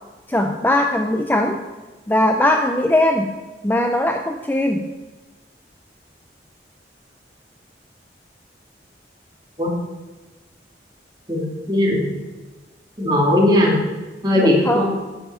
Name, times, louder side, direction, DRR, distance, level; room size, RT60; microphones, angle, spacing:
voice 1, 0.3-1.6 2.1-3.3 3.6-4.9 14.4-14.8, left 1 dB, 10° left, 4 dB, 0.5 m, -19 dB
voice 2, 11.7-12.0 13.0-13.7 14.2-14.8, left 1 dB, 25° right, -3 dB, 2.5 m, -17 dB
9.7 x 5.8 x 7.1 m, 1.2 s
head